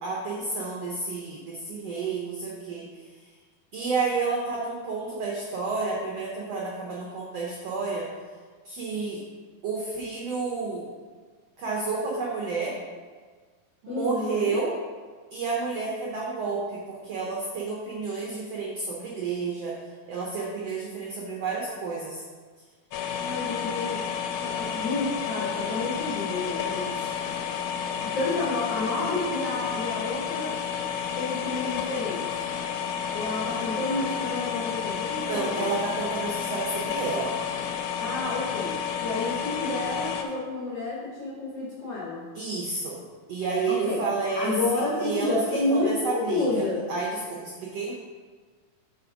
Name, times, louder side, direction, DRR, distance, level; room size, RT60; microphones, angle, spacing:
voice 1, 0.0-2.9 3.7-8.1 8.6-9.2 9.6-10.8 11.6-12.8 13.8-14.7 15.3-19.7 20.1-22.2 26.9-27.1 35.2-37.3 42.3-43.0 43.3-47.9, right 4 dB, 85° right, -3 dB, 1.4 m, -30 dB
voice 2, 13.9-14.6 23.2-24.0 24.4-26.9 28.0-30.6 31.1-32.3 33.1-35.7 38.0-42.2 43.7-44.0 44.3-46.8, left 2 dB, 60° left, -5 dB, 1.7 m, -30 dB
sound 1, 22.9-40.2, left 8 dB, 85° left, 2.4 m, -31 dB
6.9 x 4.9 x 5.0 m, 1.5 s
omnidirectional pair, 4.2 m